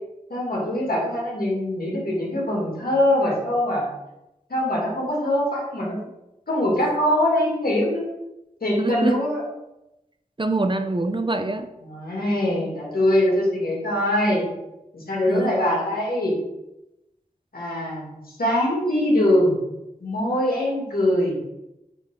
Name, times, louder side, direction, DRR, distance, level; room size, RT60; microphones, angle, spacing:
voice 1, 0.3-3.9 4.5-6.0 6.5-8.1 8.6-9.4 11.8-14.5 14.9-16.4 17.5-18.1 18.4-19.6 20.0-21.4, left 1 dB, 80° left, -4 dB, 2.5 m, -22 dB
voice 2, 8.8-9.2 10.4-11.7 15.3-15.6, right 2 dB, 30° right, 7 dB, 0.6 m, -24 dB
8.3 x 3.9 x 3.8 m, 0.92 s
wide cardioid pair, 60°, 15 cm